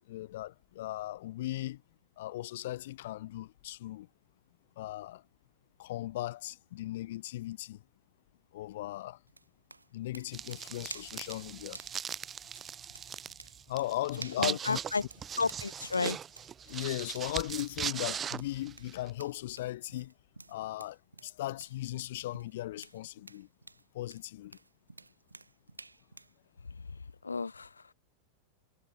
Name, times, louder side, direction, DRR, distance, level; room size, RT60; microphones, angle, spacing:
voice 1, 0.0-1.8 2.2-4.1 4.8-5.2 5.8-7.8 8.5-9.2 9.9-11.8 13.7-14.8 16.7-20.1 20.5-21.0 21.2-23.5 23.9-24.5, left 15 dB, 55° left, 2.8 m, -37 dB
sound 1, 9.3-26.4, right 3 dB, 80° right, 7.8 m, -52 dB
sound 2, 10.3-19.1, right 8 dB, 25° right, 5.8 m, -40 dB
voice 2, 14.4-15.0 15.4-16.2 26.7-26.8 27.2-27.9, left 4 dB, 75° left, 2.2 m, -32 dB
figure-of-eight pair, 90°, 0 cm